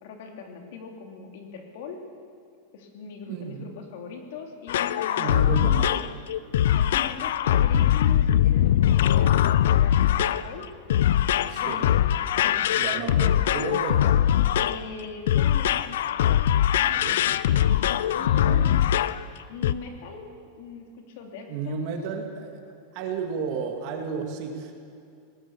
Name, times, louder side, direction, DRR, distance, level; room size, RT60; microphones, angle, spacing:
voice 1, 0.0-2.1 2.7-6.0 6.6-10.7 11.5-12.8 14.6-15.9 18.1-18.9 19.5-20.3 20.6-21.9, left 5 dB, 55° left, 3 dB, 2.9 m, -40 dB
voice 2, 3.3-3.7 5.2-5.9 11.5-11.9 12.7-14.1 16.8-17.2 18.1-18.7 21.5-22.6 22.9-24.7, right 6 dB, 40° right, 3 dB, 2.5 m, -33 dB
sound 1, 4.7-19.2 19.6-19.7, left 11 dB, 75° left, 0.6 m, -22 dB
20.5 x 19.0 x 7.2 m, 2.4 s
supercardioid pair, 175°, 0 cm